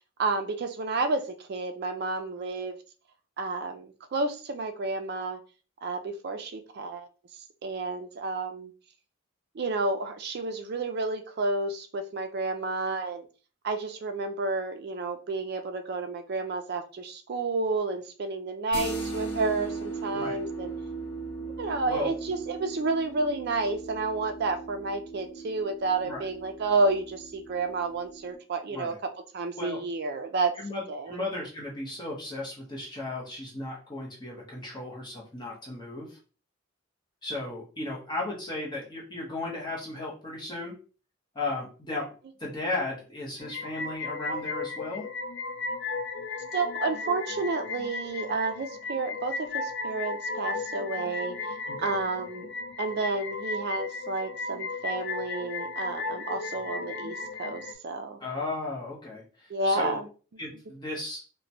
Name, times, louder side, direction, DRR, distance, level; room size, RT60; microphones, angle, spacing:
voice 1, 0.2-2.8 3.4-5.4 5.8-7.1 7.6-8.7 9.5-13.3 13.6-20.7 21.6-28.9 29.3-30.5 30.9-31.2 46.5-51.4 51.8-52.5 52.8-58.2 59.5-60.1, right 3 dB, 50° right, 7 dB, 0.4 m, -30 dB
sound 1, 18.7-28.3, right 4 dB, 85° left, 0.9 m, -38 dB
voice 2, 30.5-36.2 37.2-40.7 41.3-42.1 42.4-45.0 51.7-51.9 58.2-60.0 60.4-61.2, left 2 dB, 20° left, -4 dB, 0.8 m, -35 dB
sound 2, 43.4-57.7, left 3 dB, 55° left, 0.3 m, -35 dB
2.9 x 2.1 x 2.6 m, 0.36 s
head